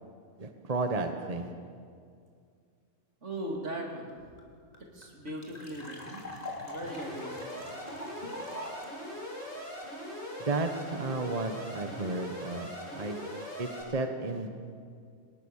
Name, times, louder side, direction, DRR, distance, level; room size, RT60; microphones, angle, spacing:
voice 1, 0.4-1.5 10.4-13.2 13.6-14.5, right 3 dB, 30° right, 6 dB, 1.3 m, -33 dB
voice 2, 3.2-4.1 4.9-6.2 6.7-7.6, right 1 dB, 65° right, 1 dB, 3.5 m, -39 dB
sound 1, 4.1-4.2 4.4-4.5 4.7-8.8, left 1 dB, 30° left, 3.4 m, -43 dB
Alarm, 6.8-13.8, equal, 60° left, 7.5 m, -41 dB
25.5 x 19.5 x 7.3 m, 2.2 s
omnidirectional pair, 1.3 m